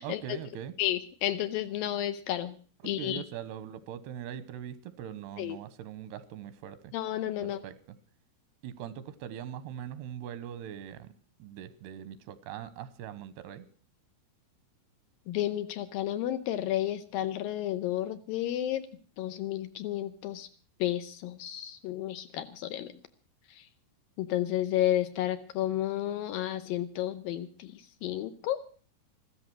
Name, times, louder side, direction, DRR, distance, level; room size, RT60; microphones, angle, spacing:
voice 1, 0.0-0.7 2.8-6.9 7.4-7.8 8.6-11.1 11.4-13.7, right 10 dB, 90° right, 14 dB, 3.1 m, -41 dB
voice 2, 0.8-2.6 2.8-3.2 5.4-5.6 6.9-7.6 15.3-18.8 19.2-20.5 20.8-22.9 24.2-27.7 28.0-28.6, left 12 dB, 75° left, 11 dB, 2.4 m, -31 dB
14.5 x 13.0 x 6.0 m, 0.42 s
omnidirectional pair, 4.6 m